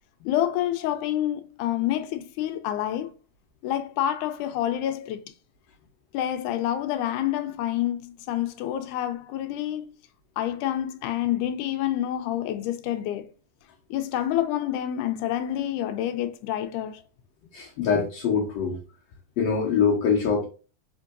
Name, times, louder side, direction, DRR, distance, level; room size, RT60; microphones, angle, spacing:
voice 1, 0.3-3.1 3.6-5.2 6.1-9.9 10.4-13.3 13.9-17.0, left 12 dB, 85° left, 2.0 m, -28 dB
voice 2, 17.5-18.8 19.4-20.4, left 6 dB, 70° left, 1.8 m, -23 dB
4.5 x 3.6 x 2.4 m
omnidirectional pair, 3.5 m